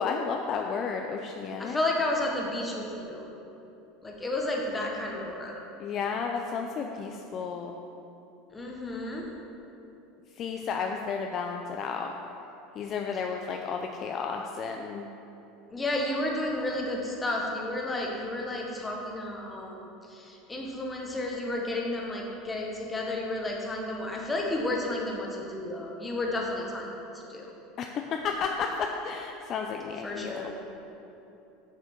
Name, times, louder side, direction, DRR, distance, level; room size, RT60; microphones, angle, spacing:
voice 1, 0.0-1.8 5.8-7.8 10.4-12.1 12.8-15.1 27.8-30.6, left 5 dB, 45° left, 3 dB, 0.4 m, -32 dB
voice 2, 1.6-3.3 4.0-5.6 8.5-9.3 15.7-26.9 27.3-27.5 30.0-30.6, left 1 dB, 15° left, -1 dB, 1.3 m, -32 dB
6.8 x 6.5 x 4.5 m, 2.9 s
supercardioid pair, 105°, 0 cm